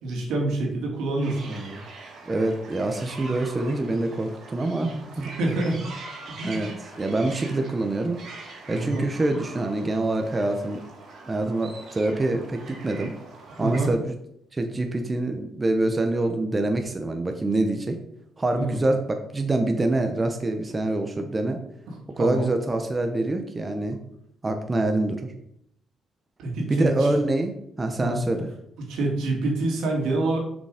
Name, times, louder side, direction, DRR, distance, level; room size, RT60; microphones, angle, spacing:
voice 1, 0.0-1.8 4.8-4.9 5.4-5.8 6.4-6.6 8.7-9.1 13.6-13.9 18.6-18.8 21.9-22.5 26.4-27.1 28.0-28.2 28.8-30.4, right 2 dB, 85° right, 0 dB, 2.4 m, -27 dB
sound 1, 1.2-13.9, right 3 dB, 60° right, 2.2 m, -43 dB
voice 2, 2.3-5.3 6.4-8.2 8.7-10.8 11.2-13.1 13.6-14.2 14.5-18.0 18.4-21.6 22.2-24.0 24.4-25.3 26.7-28.5, right 2 dB, 25° right, 5 dB, 0.9 m, -25 dB
6.6 x 5.3 x 5.0 m, 0.74 s
cardioid pair, 90°, 0 cm